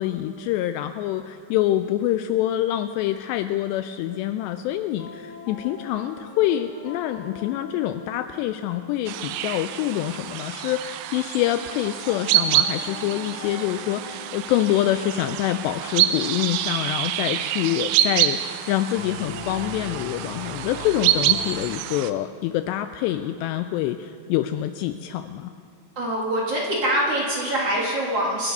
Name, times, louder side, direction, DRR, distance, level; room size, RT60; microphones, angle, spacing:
voice 1, 0.0-25.5, left 13 dB, 85° left, 9 dB, 2.6 m, -26 dB
sound 1, 3.9-4.6 5.0-11.2 11.6-18.2 19.0-21.5, left 2 dB, 65° left, 3.6 m, -42 dB
sound 2, 9.1-22.1, right 12 dB, 85° right, 2.9 m, -27 dB
voice 2, 26.0-28.5, right 1 dB, 50° right, -3 dB, 1.9 m, -24 dB
27.0 x 9.9 x 5.4 m, 2.3 s
omnidirectional pair, 5.2 m